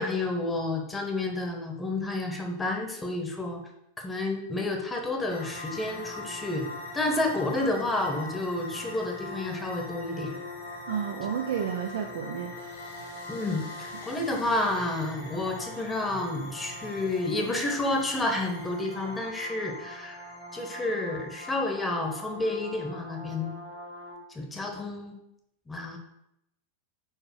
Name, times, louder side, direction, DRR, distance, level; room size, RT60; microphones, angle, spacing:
voice 1, 0.0-3.6 4.0-6.7 6.9-10.4 13.3-20.2 20.5-23.6 24.3-25.1 25.7-26.0, left 2 dB, 10° left, 2 dB, 1.1 m, -30 dB
sound 1, 5.3-24.2, left 2 dB, 60° left, 1.9 m, -41 dB
voice 2, 10.9-12.5 13.0-13.1, right 8 dB, 55° right, 5 dB, 0.5 m, -31 dB
4.7 x 4.5 x 4.8 m, 0.80 s
figure-of-eight pair, 90°, 0 cm